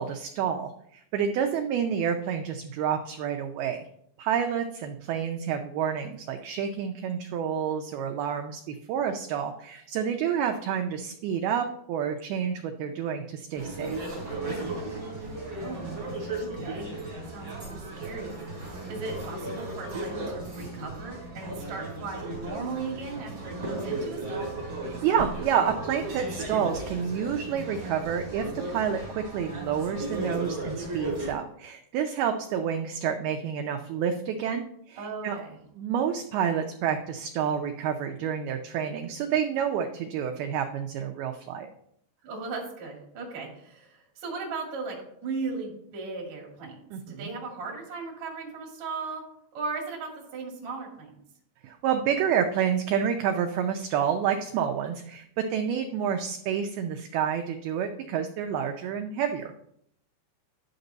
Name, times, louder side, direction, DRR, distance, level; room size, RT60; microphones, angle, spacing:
voice 1, 0.0-3.9 4.2-14.0 24.8-35.4 35.7-41.7 46.9-47.3 51.6-59.7, right 8 dB, 85° right, 5 dB, 2.1 m, -29 dB
sound 1, 13.5-31.3, right 2 dB, 25° right, 4.1 m, -35 dB
voice 2, 15.5-16.0 16.4-16.9 17.3-18.3 18.9-24.5 35.0-35.6 42.2-45.0 45.2-46.8 47.1-49.2 49.5-51.1, right 4 dB, 45° right, -1 dB, 2.9 m, -37 dB
11.5 x 6.6 x 4.0 m, 0.71 s
omnidirectional pair, 5.2 m